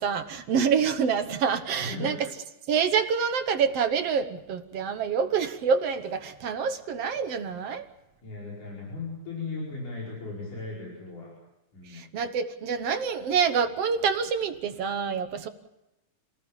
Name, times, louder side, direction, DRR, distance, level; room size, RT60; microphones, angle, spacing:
voice 1, 0.0-2.3 2.7-7.9 11.9-15.5, right 6 dB, 60° right, 9 dB, 1.9 m, -27 dB
voice 2, 1.8-2.2 8.2-11.3 11.7-12.0, left 3 dB, 75° left, -4 dB, 6.7 m, -37 dB
27.5 x 18.0 x 7.4 m, 0.92 s
omnidirectional pair, 3.7 m